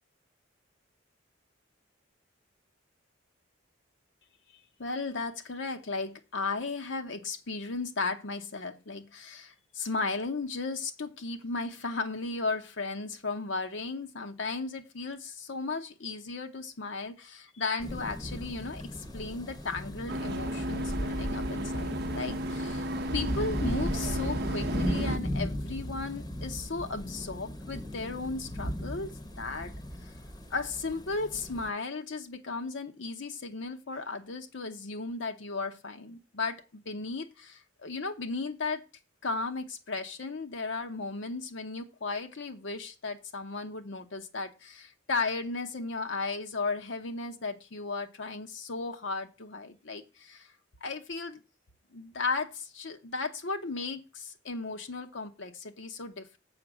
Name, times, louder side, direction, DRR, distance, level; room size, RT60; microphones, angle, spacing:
voice 1, 4.8-29.1 29.4-29.7 30.0-30.1 30.5-38.8 39.2-50.5 50.8-51.4 51.9-56.4, left 3 dB, 65° left, 0.8 m, -35 dB
sound 1, 17.8-31.7, equal, 20° left, 0.8 m, -36 dB
sound 2, 20.1-25.2, equal, 50° right, 0.6 m, -34 dB
7.9 x 5.0 x 6.1 m
head